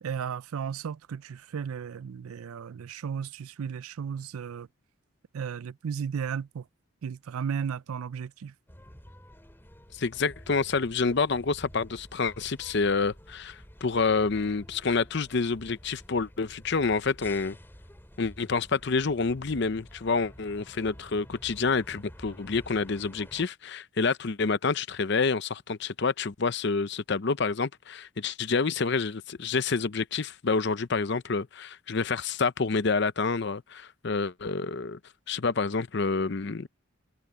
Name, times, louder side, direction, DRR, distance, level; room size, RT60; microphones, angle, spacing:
voice 1, 0.0-4.7 5.3-6.6 7.0-8.5, right 7 dB, 90° right, 0.4 m, -34 dB
sound 1, 8.7-23.4, equal, 10° left, 3.3 m, -50 dB
voice 2, 9.9-17.6 18.2-35.0 35.3-36.7, left 4 dB, 55° left, 0.6 m, -28 dB
head